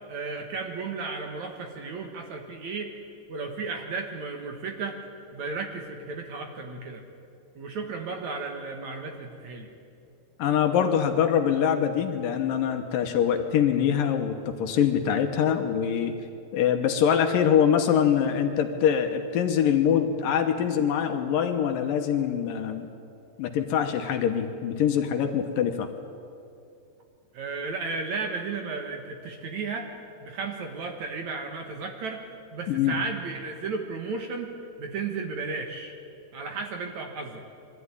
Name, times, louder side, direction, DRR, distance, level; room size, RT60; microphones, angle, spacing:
voice 1, 0.1-2.9 3.3-5.0 5.3-7.0 7.6-9.7 27.3-29.9 30.2-32.2 32.5-34.5 34.8-35.9 36.3-37.4, right 4 dB, 55° right, 3 dB, 2.5 m, -34 dB
voice 2, 10.4-16.1 16.5-22.9 23.4-25.9 32.7-33.0, left 8 dB, 70° left, 6 dB, 2.6 m, -24 dB
23.0 x 14.0 x 9.8 m, 2.5 s
omnidirectional pair, 4.4 m